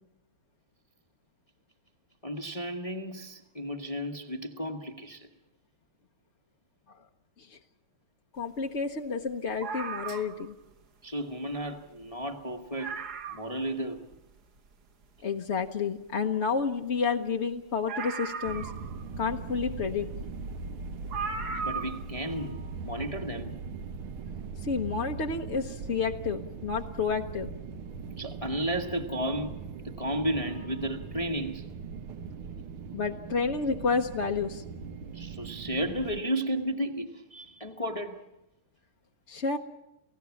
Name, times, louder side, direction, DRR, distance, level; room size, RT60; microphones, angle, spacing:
voice 1, 2.2-5.3 11.0-13.0 13.3-14.0 21.6-23.6 28.2-29.6 29.8-31.7 35.1-38.2, equal, 20° left, 1.0 m, -33 dB
voice 2, 8.3-10.5 15.2-18.7 19.2-20.1 24.6-27.5 32.9-34.6 39.3-39.6, left 5 dB, 45° left, 0.9 m, -30 dB
sound 1, 9.6-10.5 11.6-11.7 12.0-12.1 12.5-12.6 12.8-13.6 14.1-14.2 17.9-19.1 20.3-20.4 21.1-22.1 22.4-22.5, right 5 dB, 55° right, 1.7 m, -36 dB
sound 2, 18.4-36.2, right 5 dB, 80° right, 2.0 m, -40 dB
30.0 x 16.5 x 7.1 m
omnidirectional pair, 2.3 m